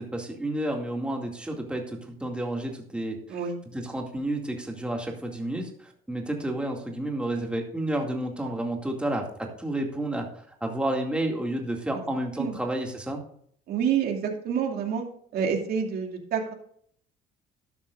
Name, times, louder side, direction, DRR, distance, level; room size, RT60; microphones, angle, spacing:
voice 1, 0.0-3.4 3.7-13.2, right 1 dB, 5° right, 1 dB, 2.3 m, -31 dB
voice 2, 13.7-15.0 15.3-16.5, right 7 dB, 65° right, 1 dB, 2.5 m, -27 dB
12.5 x 11.0 x 2.5 m, 0.62 s
cardioid pair, 110°, 17 cm